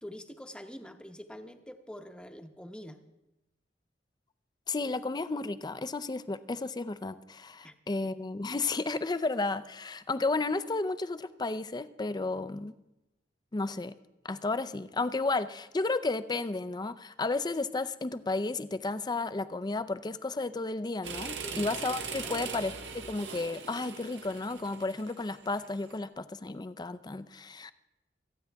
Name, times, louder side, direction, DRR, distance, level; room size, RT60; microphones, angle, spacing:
voice 1, 0.0-3.0 7.6-7.8 21.4-21.7 22.2-22.5, equal, 5° left, 7 dB, 0.9 m, -45 dB
voice 2, 4.7-12.7 13.5-13.9 14.2-27.7, left 3 dB, 25° left, 13 dB, 0.5 m, -33 dB
sound 1, 21.0-25.9, right 5 dB, 85° right, 1.3 m, -40 dB
27.0 x 9.4 x 3.5 m, 0.93 s
head